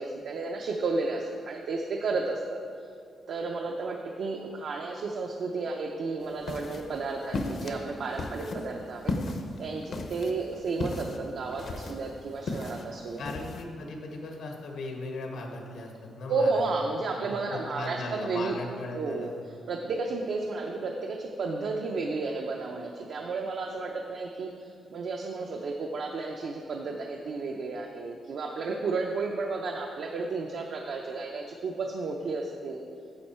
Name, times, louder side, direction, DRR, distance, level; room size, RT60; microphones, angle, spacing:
voice 1, 0.0-2.9 3.3-13.2 16.3-18.5 18.9-32.8, right 3 dB, 65° right, 1 dB, 0.6 m, -32 dB
sound 1, 6.2-13.6, left 2 dB, 55° left, 0.7 m, -36 dB
voice 2, 13.2-16.6 17.1-19.4, left 2 dB, 85° left, 1 dB, 1.5 m, -38 dB
9.9 x 7.3 x 4.4 m, 2.5 s
wide cardioid pair, 150°, 0 cm